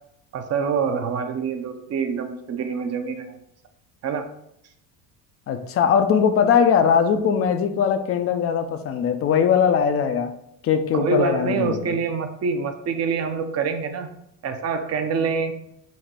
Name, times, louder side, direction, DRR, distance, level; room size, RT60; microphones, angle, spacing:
voice 1, 0.3-3.4 4.0-4.3 10.9-14.2 14.4-15.5, right 5 dB, 30° right, 8 dB, 0.5 m, -26 dB
voice 2, 5.5-10.4 10.6-12.0, left 7 dB, 30° left, 9 dB, 0.4 m, -20 dB
4.2 x 2.1 x 4.2 m, 0.78 s
hypercardioid pair, 80°, 49 cm